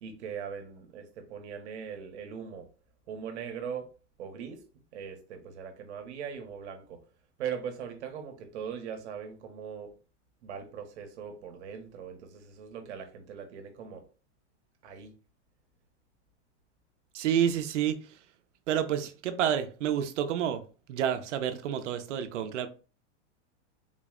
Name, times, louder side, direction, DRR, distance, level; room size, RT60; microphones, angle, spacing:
voice 1, 0.0-2.7 3.1-3.9 4.2-4.6 4.9-7.0 7.4-9.9 10.4-14.0 14.8-15.1, right 7 dB, 70° right, 1.0 m, -40 dB
voice 2, 17.1-18.0 18.7-20.6 20.9-22.7, right 9 dB, 90° right, 0.7 m, -29 dB
3.9 x 2.1 x 3.7 m
supercardioid pair, 175°, 35 cm